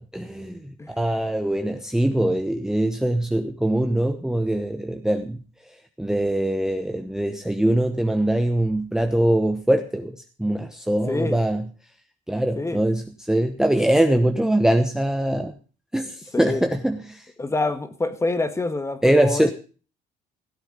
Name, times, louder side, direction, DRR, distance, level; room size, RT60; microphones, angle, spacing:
voice 1, 0.0-5.4 6.0-11.6 12.3-15.5 15.9-17.2 19.0-19.5, right 1 dB, 5° right, 0.9 m, -22 dB
voice 2, 11.1-11.4 12.6-12.8 16.3-16.7 17.4-19.5, left 3 dB, 15° left, 1.5 m, -26 dB
16.5 x 8.1 x 5.4 m
cardioid pair, 110°, 17 cm